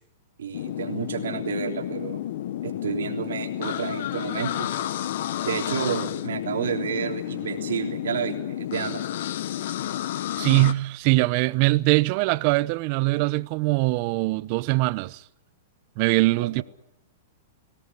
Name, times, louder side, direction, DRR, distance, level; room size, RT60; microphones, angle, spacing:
voice 1, 0.4-2.2 2.6-4.7 5.4-9.1 16.4-16.6, right 8 dB, 85° right, 3.4 m, -30 dB
sound 1, 0.5-10.7, left 12 dB, 65° left, 1.2 m, -31 dB
voice 2, 10.4-15.2 16.0-16.6, right 21 dB, 45° right, 0.8 m, -22 dB
19.5 x 17.5 x 9.9 m
hypercardioid pair, 135°, 0 cm